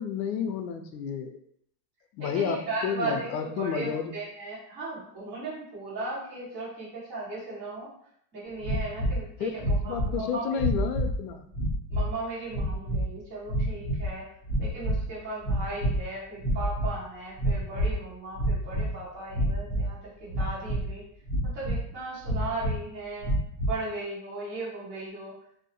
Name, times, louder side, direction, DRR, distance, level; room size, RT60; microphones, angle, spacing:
voice 1, 0.0-1.3 2.1-2.6 2.8-4.1 9.4-9.5 9.8-11.5, left 7 dB, 90° left, 7 dB, 0.6 m, -30 dB
voice 2, 2.2-7.9 8.3-10.6 11.9-14.3 14.6-21.0 21.4-23.3 23.6-25.3, right 2 dB, 25° right, -10 dB, 1.2 m, -37 dB
sound 1, 8.6-9.2 9.6-10.2 10.5-11.2 11.5-12.1 12.5-13.0 13.5-14.1 14.4-15.1 15.4-16.1 16.4-17.0 17.4-18.0 18.3-18.9 19.3-19.9 20.3-20.9 21.3-21.8 22.2-22.8 23.2-23.8, equal, 20° left, 0.8 m, -28 dB
2.6 x 2.1 x 2.8 m, 0.68 s
supercardioid pair, 160°, 49 cm